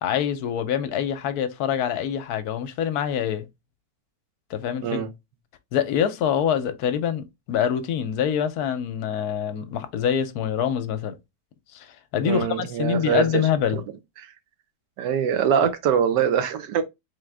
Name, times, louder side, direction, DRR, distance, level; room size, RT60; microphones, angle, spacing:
voice 1, 0.0-3.5 4.5-5.0 5.7-11.1 11.7-13.8, left 8 dB, 70° left, 1.1 m, -25 dB
voice 2, 12.2-13.4 13.7-13.8 14.2-14.3 15.0-16.8, right 8 dB, 80° right, 1.4 m, -23 dB
3.7 x 3.6 x 3.3 m
omnidirectional pair, 1.9 m